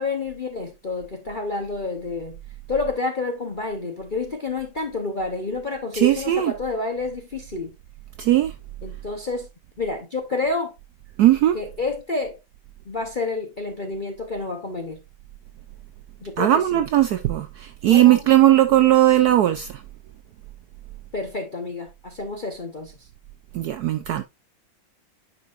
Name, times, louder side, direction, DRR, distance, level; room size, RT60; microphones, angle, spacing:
voice 1, 0.0-2.4 2.7-7.7 8.8-9.5 9.8-10.7 11.5-12.4 12.9-15.0 16.2-16.8 17.9-18.2 21.1-23.1, left 3 dB, 40° left, 0.7 m, -29 dB
voice 2, 5.9-6.5 8.2-8.5 11.2-11.6 16.4-19.8 23.5-24.2, right 13 dB, 75° right, 0.9 m, -18 dB
9.5 x 5.3 x 2.5 m
omnidirectional pair, 2.1 m